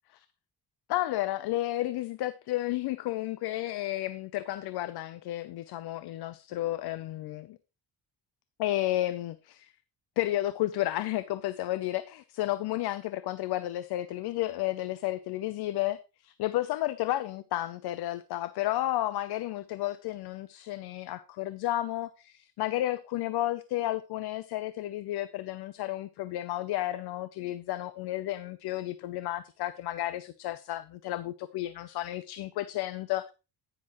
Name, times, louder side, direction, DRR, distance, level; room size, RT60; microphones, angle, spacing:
voice 1, 0.9-7.6 8.6-9.7 10.2-33.3, left 15 dB, 70° left, 0.6 m, -32 dB
9.9 x 9.9 x 3.0 m
cardioid pair, 170°, 40 cm